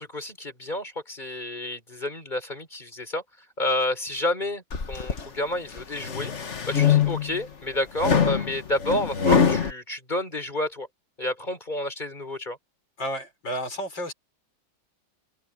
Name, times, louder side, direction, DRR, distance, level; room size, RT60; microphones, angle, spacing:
voice 1, 0.0-3.2 3.6-6.3 6.7-10.9 11.2-12.6, left 1 dB, 25° left, 4.7 m, -30 dB
sound 1, 4.7-5.3 5.8-7.4 8.0-9.7, left 7 dB, 40° left, 1.7 m, -23 dB
voice 2, 13.0-14.1, equal, 85° left, 7.0 m, -32 dB
omnidirectional pair, 2.0 m